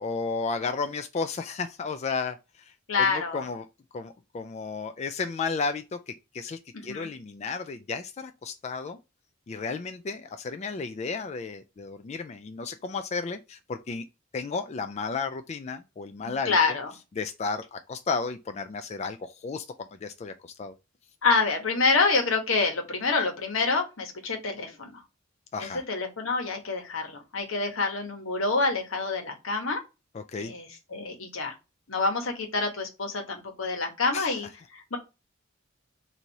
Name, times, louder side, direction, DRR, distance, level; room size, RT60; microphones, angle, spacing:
voice 1, 0.0-3.7 3.9-9.0 9.5-14.0 14.3-16.6 17.2-20.7 25.5-25.8 30.1-30.5 34.1-34.4, left 4 dB, 35° left, 0.3 m, -33 dB
voice 2, 2.9-3.4 6.7-7.1 16.2-16.9 21.2-25.0 25.6-29.8 30.4-31.5 31.9-35.0, left 4 dB, 85° left, 1.3 m, -27 dB
4.0 x 2.7 x 4.6 m
head